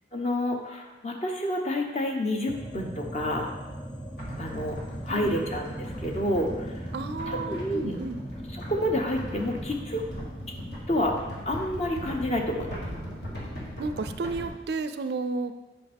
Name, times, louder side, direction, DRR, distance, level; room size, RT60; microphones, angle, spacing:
voice 1, 0.1-3.5 4.4-6.7 7.3-8.0 8.5-10.0 10.9-11.1 11.4-12.8, left 1 dB, 35° left, 2 dB, 0.9 m, -29 dB
sound 1, 2.5-12.9, equal, 5° left, 0.5 m, -39 dB
sound 2, 4.2-14.5, equal, 65° left, 1.9 m, -40 dB
voice 2, 6.9-8.2 13.8-15.5, right 3 dB, 65° right, 10 dB, 0.4 m, -32 dB
8.4 x 5.4 x 3.5 m, 1.1 s
head